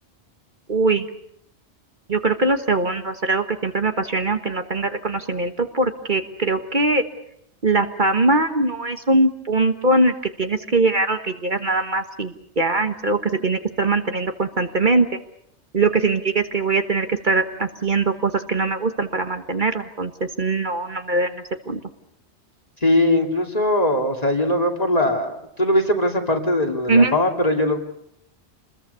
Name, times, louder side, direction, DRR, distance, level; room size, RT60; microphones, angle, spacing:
voice 1, 0.7-1.1 2.1-7.0 7.6-15.2 15.7-21.8 26.9-27.1, right 3 dB, 45° right, 7 dB, 1.5 m, -21 dB
voice 2, 22.8-27.8, left 1 dB, 35° left, 3 dB, 2.6 m, -20 dB
28.0 x 21.0 x 6.8 m, 0.72 s
omnidirectional pair, 1.1 m